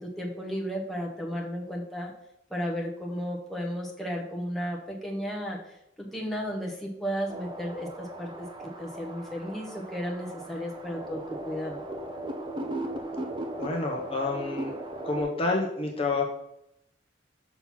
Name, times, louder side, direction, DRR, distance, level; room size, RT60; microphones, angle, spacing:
voice 1, 0.0-2.1 2.5-5.6 6.0-8.5 8.8-11.8, equal, ahead, -3 dB, 1.0 m, -34 dB
sound 1, 7.3-15.2, right 1 dB, 25° right, 0.7 m, -37 dB
voice 2, 13.6-14.7 15.0-16.3, left 3 dB, 30° left, 0 dB, 0.9 m, -28 dB
6.0 x 3.9 x 5.8 m, 0.80 s
head